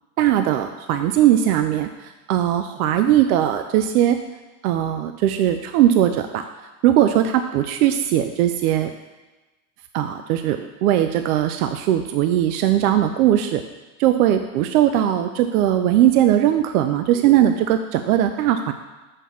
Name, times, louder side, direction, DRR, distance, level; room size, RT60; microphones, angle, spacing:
voice 1, 0.2-4.2 4.6-6.5 6.8-8.9 9.9-13.6 14.0-18.7, right 11 dB, 80° right, 8 dB, 0.6 m, -19 dB
6.6 x 5.4 x 7.0 m, 1.2 s
supercardioid pair, 110°, 44 cm